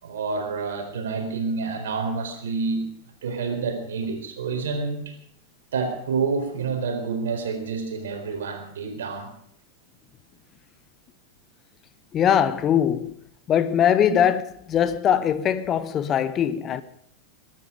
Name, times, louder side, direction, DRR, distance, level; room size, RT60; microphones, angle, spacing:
voice 1, 0.0-2.9 3.2-5.2 5.7-9.3 14.1-14.2, right 4 dB, 60° right, 4.3 m, -28 dB
voice 2, 12.1-13.1 13.5-14.4 14.7-16.8, left 9 dB, 30° left, 0.9 m, -21 dB
22.5 x 12.0 x 5.1 m
figure-of-eight pair, 90°, 0 cm